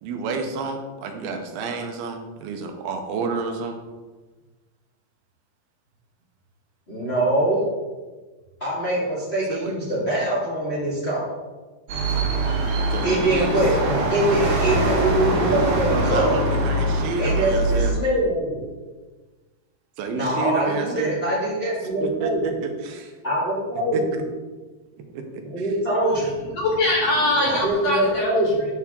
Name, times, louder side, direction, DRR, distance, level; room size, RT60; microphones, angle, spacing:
voice 1, 0.0-3.8 9.5-9.7 12.9-13.5 16.0-17.9 20.0-21.2 22.0-23.1 23.9-24.2 25.1-25.7, right 5 dB, 85° right, 4 dB, 2.8 m, -30 dB
voice 2, 6.9-7.6 8.6-11.3 13.0-13.8 14.1-16.4 17.2-18.6 20.1-22.4 23.2-24.0 25.4-26.3 27.4-28.7, right 1 dB, 30° left, -7 dB, 1.2 m, -23 dB
sound 1, 11.9-17.9, right 2 dB, 65° right, 2.4 m, -23 dB
voice 3, 26.2-28.3, left 1 dB, 65° left, -3 dB, 1.8 m, -23 dB
9.5 x 6.0 x 3.7 m, 1.3 s
omnidirectional pair, 4.3 m